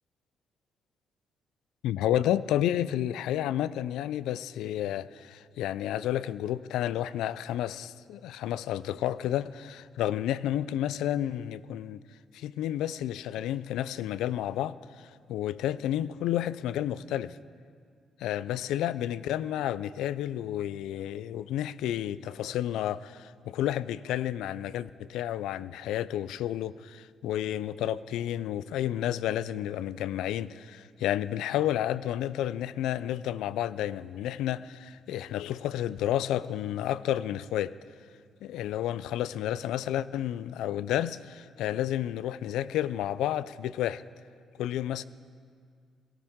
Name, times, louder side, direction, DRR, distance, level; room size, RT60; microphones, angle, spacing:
voice 1, 1.8-12.0 12.3-17.4 18.2-37.8 38.4-44.0 44.6-45.0, left 12 dB, 90° left, 0.3 m, -31 dB
18.0 x 15.0 x 3.6 m
cardioid pair, 90°, 0 cm